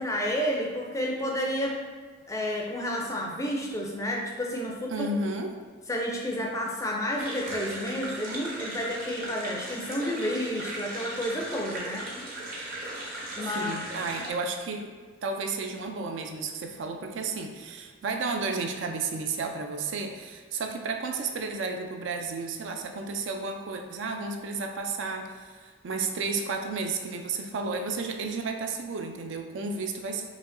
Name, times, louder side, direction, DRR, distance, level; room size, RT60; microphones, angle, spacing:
voice 1, 0.0-1.8 2.3-5.1 5.9-12.1 13.4-13.7, equal, 15° left, -1 dB, 0.4 m, -30 dB
voice 2, 4.9-5.5 13.5-14.8 15.2-30.2, right 4 dB, 60° right, 4 dB, 0.4 m, -32 dB
sound 1, 7.2-14.3, right 1 dB, 40° right, 0.8 m, -37 dB
4.9 x 2.7 x 2.5 m, 1.5 s
head